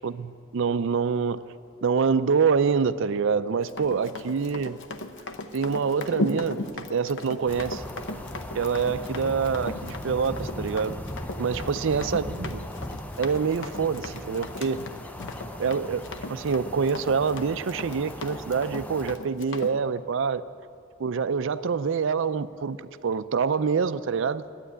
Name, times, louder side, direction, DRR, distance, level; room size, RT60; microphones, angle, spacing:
voice 1, 0.0-1.4 1.8-4.8 5.5-6.6 6.9-7.8 8.5-11.0 11.4-12.6 13.2-14.8 15.5-20.4 21.0-22.8 23.0-24.4, right 5 dB, 60° right, 14 dB, 0.4 m, -26 dB
Run, 3.7-19.8, left 2 dB, 60° left, 0.8 m, -37 dB
sound 1, 7.5-19.2, left 1 dB, 5° left, 0.5 m, -38 dB
11.5 x 8.9 x 9.7 m, 2.4 s
head